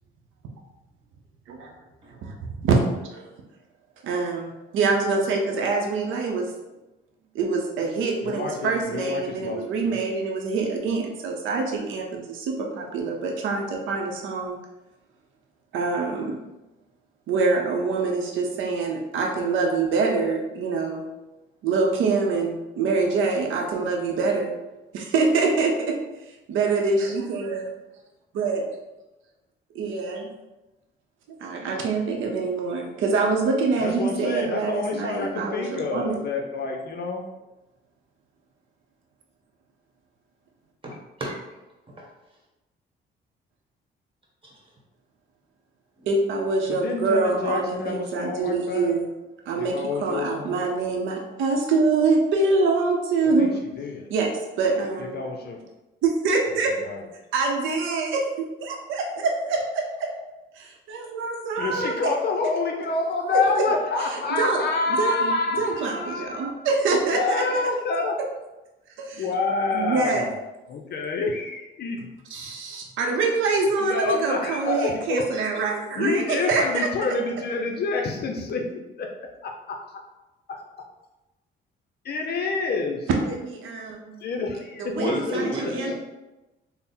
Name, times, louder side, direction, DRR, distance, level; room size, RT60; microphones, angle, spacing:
voice 1, 2.2-2.8 3.1-3.3 4.0-6.5 7.3-14.6 15.7-16.3 17.3-21.0 21.6-24.5 24.9-26.0 26.5-27.7 28.3-28.6 29.7-30.3 31.4-36.2 46.1-49.1 49.5-49.7 50.0-53.5 54.1-54.3 54.6-55.1 56.0-56.7 57.3-58.2 58.6-60.1 60.6-62.0 64.4-64.6 65.0-67.4 69.0-69.2 69.7-70.2 72.3-76.9 83.2-84.2 84.8-86.0, right 4 dB, 85° right, 1 dB, 0.6 m, -25 dB
voice 2, 8.2-10.0 33.8-37.2 46.7-48.9 49.6-50.7 53.4-54.1 55.0-55.6 56.8-57.0 61.6-66.5 67.2-68.2 69.1-70.3 70.7-72.0 73.8-75.3 75.9-79.1 79.4-80.0 80.5-80.6 82.0-83.1 84.2-85.7, left 3 dB, 55° left, 2 dB, 0.5 m, -28 dB
voice 3, 40.8-41.4 42.0-42.1 44.4-44.5 46.0-46.1 84.9-86.0, right 1 dB, 25° right, -2 dB, 1.3 m, -30 dB
3.5 x 2.0 x 4.2 m, 1.0 s
cardioid pair, 90°, 20 cm